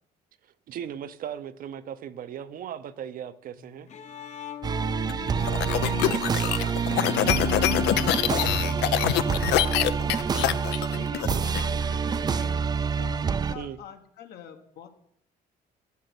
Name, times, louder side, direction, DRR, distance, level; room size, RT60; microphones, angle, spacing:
voice 1, 0.7-3.9 11.4-11.5 13.5-13.8, right 9 dB, 55° right, 12 dB, 0.7 m, -37 dB
Bowed string instrument, 3.6-9.7, left 7 dB, 45° left, 0.9 m, -36 dB
sound 1, 4.6-13.5, right 6 dB, 25° right, 0.4 m, -27 dB
sound 2, 5.1-11.6, left 13 dB, 85° left, 0.6 m, -25 dB
voice 2, 5.1-9.3 9.6-10.6 10.9-12.6 12.9-14.9, left 8 dB, 70° left, 7 dB, 1.3 m, -45 dB
14.0 x 5.7 x 6.0 m, 0.72 s
cardioid pair, 110°, 17 cm